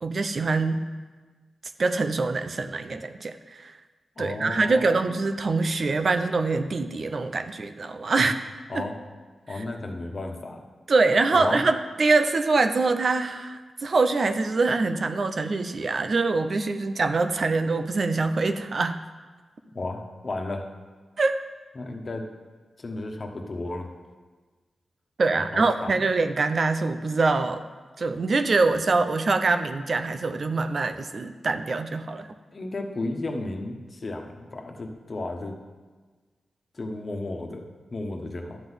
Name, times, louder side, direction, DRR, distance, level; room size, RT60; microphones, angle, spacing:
voice 1, 0.0-0.9 1.8-3.7 4.2-8.3 8.7-8.9 9.5-9.6 10.9-19.0 21.2-21.4 25.2-27.6 28.0-32.3, right 3 dB, 55° right, 9 dB, 0.6 m, -24 dB
voice 2, 4.2-4.9 8.2-8.3 8.7-9.0 9.5-10.6 11.3-11.6 19.7-20.7 21.7-22.3 22.8-23.9 25.3-26.0 32.5-35.6 36.7-38.6, left 2 dB, 45° left, 3 dB, 1.3 m, -33 dB
12.0 x 4.0 x 8.0 m, 1.4 s
cardioid pair, 65°, 0 cm